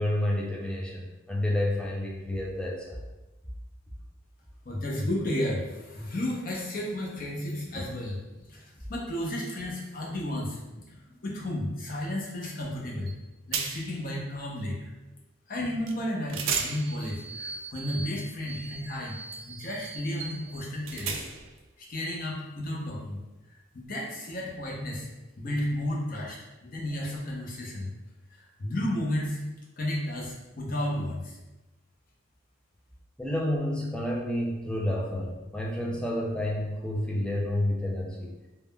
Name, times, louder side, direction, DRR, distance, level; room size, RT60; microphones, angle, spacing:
voice 1, 0.0-3.0 33.2-38.3, left 1 dB, 5° left, -3 dB, 0.4 m, -29 dB
voice 2, 4.6-8.2 8.5-10.8 11.2-13.1 13.5-14.8 15.5-19.1 19.4-21.3 21.8-23.2 23.5-25.1 25.4-27.9 28.3-29.4 29.8-31.4, left 1 dB, 45° left, -3 dB, 0.6 m, -33 dB
sound 1, 13.1-13.2 13.5-14.0 15.9-16.0 16.3-21.6, right 5 dB, 85° right, 0.3 m, -36 dB
3.4 x 2.1 x 2.2 m, 1.1 s
head